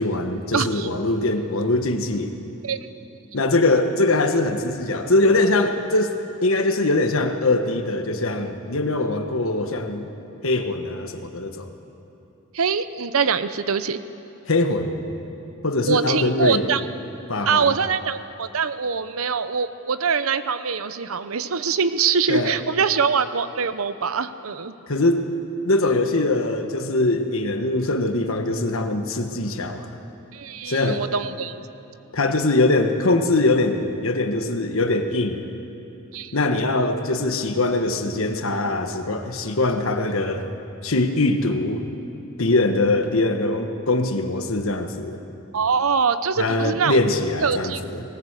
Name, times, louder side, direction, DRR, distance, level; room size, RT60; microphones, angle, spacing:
voice 1, 0.0-2.3 3.3-10.1 10.4-11.7 14.5-15.0 15.6-16.6 17.3-17.7 22.3-22.5 24.9-25.2 25.6-30.0 30.7-31.0 32.1-35.4 36.3-40.5 40.8-41.8 42.4-45.2 46.4-48.0, left 2 dB, 70° left, 6 dB, 1.4 m, -22 dB
voice 2, 0.5-0.9 2.6-2.8 12.5-14.0 15.9-16.8 17.5-24.7 30.3-31.7 36.1-36.3 45.5-47.0 47.4-47.8, right 6 dB, 75° right, 13 dB, 0.7 m, -23 dB
19.5 x 18.5 x 8.3 m, 2.9 s
head